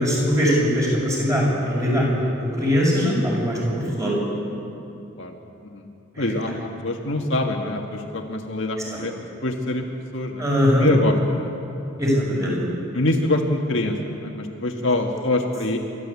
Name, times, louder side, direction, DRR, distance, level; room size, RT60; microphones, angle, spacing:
voice 1, 0.0-4.2 6.1-6.3 10.4-10.9 12.0-12.7, equal, 15° right, -4 dB, 6.2 m, -21 dB
voice 2, 6.2-9.1 9.4-10.5 10.8-11.5 12.9-15.8, left 2 dB, 60° left, 1 dB, 1.8 m, -25 dB
28.5 x 13.0 x 8.5 m, 2.7 s
head